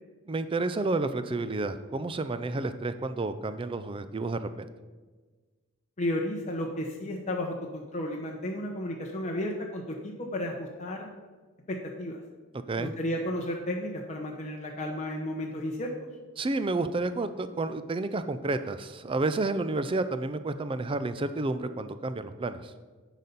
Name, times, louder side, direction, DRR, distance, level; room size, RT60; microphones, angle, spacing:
voice 1, 0.3-4.7 12.7-12.9 16.4-22.7, right 2 dB, 25° right, 11 dB, 0.4 m, -30 dB
voice 2, 6.0-11.1 11.7-12.2 12.8-15.9, left 1 dB, 35° left, 0 dB, 0.7 m, -33 dB
10.5 x 4.1 x 5.3 m, 1.3 s
head